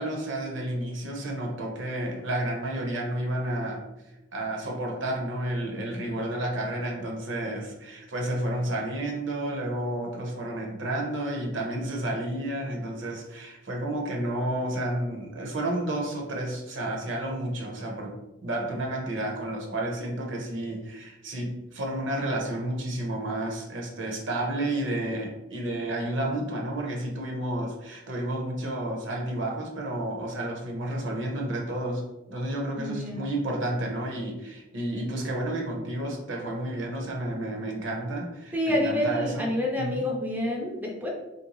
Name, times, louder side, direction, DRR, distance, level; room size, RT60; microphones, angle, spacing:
voice 1, 0.0-3.8 4.3-18.2 18.4-39.5 39.8-40.1, right 1 dB, 70° right, 0 dB, 0.8 m, -31 dB
voice 2, 32.8-33.3 38.5-41.1, left 1 dB, 10° right, -1 dB, 0.4 m, -28 dB
3.3 x 2.6 x 2.9 m, 1.0 s
head